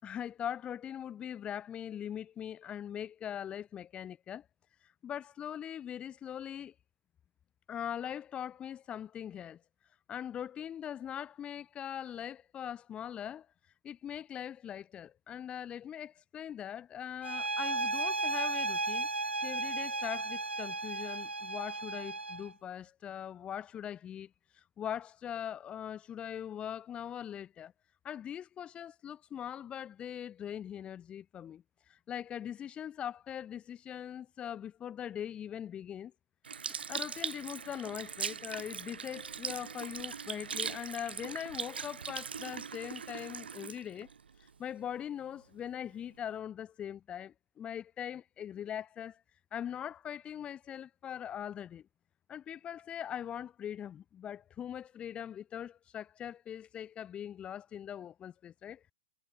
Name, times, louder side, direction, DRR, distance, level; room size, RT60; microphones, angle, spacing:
voice 1, 0.0-4.5 4.8-6.7 7.7-9.6 10.1-27.7 28.0-36.1 36.9-44.1 44.4-49.2 49.5-51.8 52.3-58.8, left 9 dB, 20° left, 3.8 m, -41 dB
sound 1, 17.2-22.5, right 3 dB, 80° right, 0.5 m, -34 dB
Sink (filling or washing) / Liquid, 36.4-45.0 45.7-45.8, right 6 dB, 65° right, 3.1 m, -40 dB
figure-of-eight pair, 115°, 6 cm